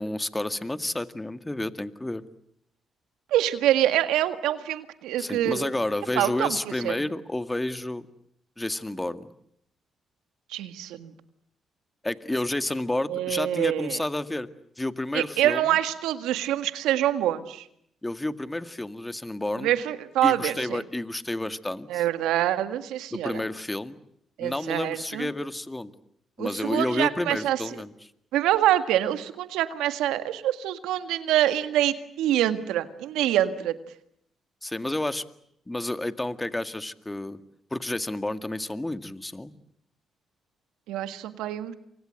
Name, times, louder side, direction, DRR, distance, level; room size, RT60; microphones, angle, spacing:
voice 1, 0.0-2.2 5.2-8.1 8.6-9.3 12.0-14.5 14.8-15.8 18.0-19.7 20.2-22.0 23.1-23.9 24.4-25.9 26.4-28.1 34.6-35.2 35.7-37.4 37.7-39.5, left 1 dB, 15° left, 11 dB, 2.0 m, -30 dB
voice 2, 3.3-5.6 6.1-6.6 6.8-7.0 10.5-11.1 13.1-14.0 15.1-17.6 19.6-20.8 21.9-23.4 24.4-25.3 26.4-27.6 28.3-33.7 40.9-41.7, right 12 dB, 85° right, 11 dB, 1.8 m, -25 dB
28.5 x 24.5 x 7.8 m, 0.72 s
supercardioid pair, 50°, 0 cm